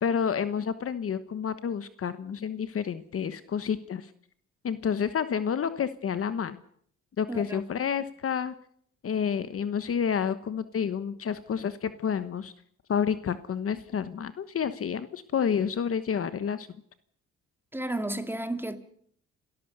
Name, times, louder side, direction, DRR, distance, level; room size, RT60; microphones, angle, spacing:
voice 1, 0.0-4.1 4.6-6.6 7.2-8.5 9.0-12.5 12.9-16.7, left 7 dB, 50° left, 1.2 m, -29 dB
voice 2, 7.3-7.6 17.7-18.8, right 1 dB, 5° right, 2.2 m, -32 dB
30.0 x 13.0 x 6.8 m
cardioid pair, 90°, 30 cm